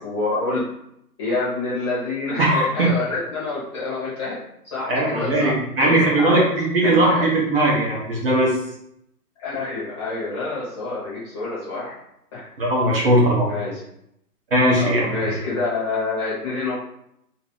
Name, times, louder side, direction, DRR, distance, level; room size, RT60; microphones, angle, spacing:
voice 1, 0.0-0.6 1.2-4.4 4.6-5.5 5.8-6.5 6.8-7.3 9.4-11.9 12.3-12.5 13.5-13.8 14.8-16.7, left 3 dB, 15° left, -8 dB, 0.9 m, -27 dB
voice 2, 2.4-2.9 4.9-8.5 12.6-13.5 14.5-15.1, right 1 dB, 35° right, -3 dB, 1.0 m, -19 dB
3.1 x 2.8 x 3.8 m, 0.78 s
hypercardioid pair, 155°, 47 cm